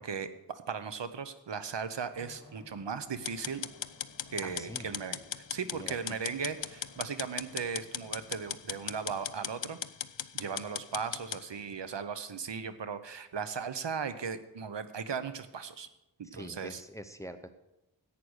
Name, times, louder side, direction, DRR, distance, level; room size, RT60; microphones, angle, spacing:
voice 1, 0.0-3.7 4.3-9.8 10.3-15.9 16.2-16.8, right 6 dB, 80° right, 11 dB, 0.9 m, -37 dB
sound 1, 2.1-9.3, left 2 dB, 65° left, 1.9 m, -57 dB
sound 2, 3.2-11.4, left 10 dB, 85° left, 0.6 m, -38 dB
voice 2, 4.4-4.9 5.7-6.0 16.2-17.5, equal, 5° left, 9 dB, 0.7 m, -44 dB
11.0 x 8.6 x 6.4 m, 0.93 s
wide cardioid pair, 75°, 43 cm